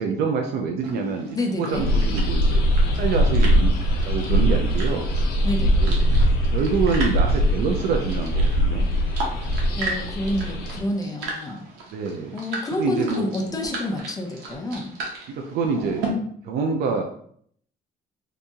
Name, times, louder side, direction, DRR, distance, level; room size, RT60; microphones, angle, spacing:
voice 1, 0.0-1.3 1.6-2.6 3.0-3.7 4.0-5.1 5.8-6.0 6.5-8.9 11.9-12.3 12.8-13.3 15.4-16.0 16.4-17.0, right 5 dB, 70° right, 2 dB, 0.5 m, -26 dB
sound 1, 0.8-16.1, right 3 dB, 90° right, 1.0 m, -37 dB
voice 2, 1.3-1.8 5.4-5.8 9.8-11.7 12.3-14.9, left 1 dB, 20° left, 3 dB, 0.6 m, -28 dB
sound 2, 1.7-10.8, equal, 70° left, 0.8 m, -21 dB
2.8 x 2.6 x 3.5 m, 0.63 s
cardioid pair, 110°, 17 cm